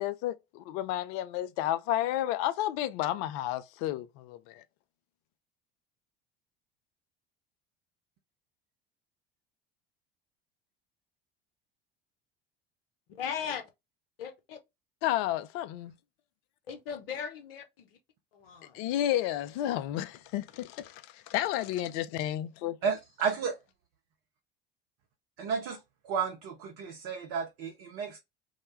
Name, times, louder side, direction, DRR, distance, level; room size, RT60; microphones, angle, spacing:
voice 1, 0.0-4.6 15.0-15.9 18.7-22.8, left 13 dB, 55° left, 0.4 m, -31 dB
voice 2, 13.2-13.6 14.2-14.6 16.7-17.9 18.3-18.8, left 7 dB, 75° left, 0.8 m, -38 dB
voice 3, 22.8-23.6 25.4-25.8 26.0-28.2, right 6 dB, 55° right, 0.7 m, -32 dB
2.2 x 2.1 x 3.1 m
hypercardioid pair, 70°, 29 cm